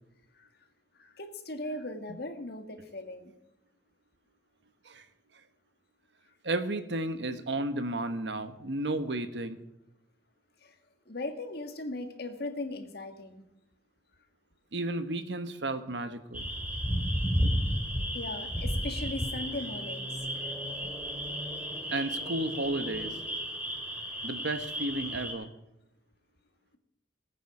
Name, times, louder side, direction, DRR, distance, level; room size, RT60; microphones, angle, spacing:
voice 1, 1.0-3.3 10.6-10.7 11.1-13.4 18.1-20.1 20.4-20.5, left 2 dB, 65° left, 7 dB, 1.7 m, -38 dB
voice 2, 6.4-9.6 14.7-16.5 21.9-23.1 24.2-25.5, right 2 dB, 85° right, 10 dB, 1.2 m, -33 dB
sound 1, 16.3-25.3, equal, 10° right, 2.4 m, -33 dB
20.0 x 8.9 x 4.9 m, 0.88 s
head